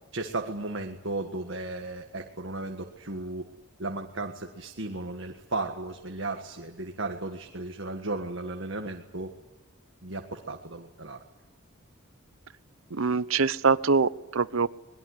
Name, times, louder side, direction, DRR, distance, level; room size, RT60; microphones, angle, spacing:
voice 1, 0.1-3.5 3.8-9.3 10.0-11.2, right 2 dB, 60° right, 3 dB, 1.7 m, -35 dB
voice 2, 12.9-14.7, right 4 dB, 75° right, 16 dB, 0.8 m, -24 dB
23.5 x 20.5 x 9.8 m, 1.0 s
head